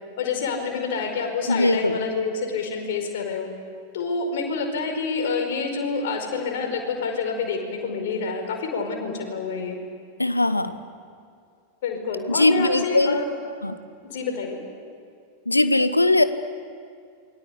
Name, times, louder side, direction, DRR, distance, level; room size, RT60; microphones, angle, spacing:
voice 1, 0.2-3.5 3.9-9.8 11.8-13.2 14.0-14.6, left 4 dB, 55° left, 3 dB, 5.1 m, -27 dB
voice 2, 1.5-2.1 10.2-10.8 12.3-13.2 13.6-13.8 15.5-16.2, left 2 dB, 85° left, 13 dB, 1.1 m, -20 dB
28.0 x 23.0 x 8.4 m, 2.3 s
figure-of-eight pair, 90°, 0 cm